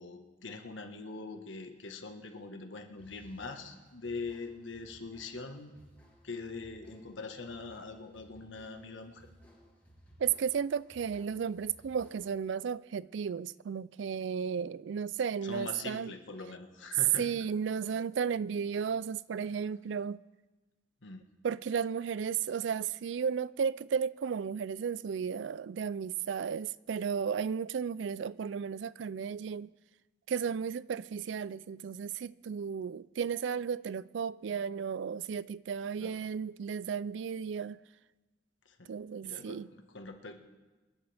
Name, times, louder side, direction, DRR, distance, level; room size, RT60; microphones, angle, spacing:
voice 1, 0.0-5.7 6.2-9.3 15.4-17.3 21.0-21.2 36.0-36.2 38.6-38.9 39.2-40.3, left 3 dB, 90° left, 1.5 m, -43 dB
sound 1, 2.9-12.5, equal, 10° left, 2.8 m, -60 dB
voice 2, 10.2-16.1 17.2-20.2 21.4-29.7 30.3-37.8 38.9-39.7, right 7 dB, 75° right, 0.4 m, -34 dB
26.5 x 11.0 x 3.4 m
head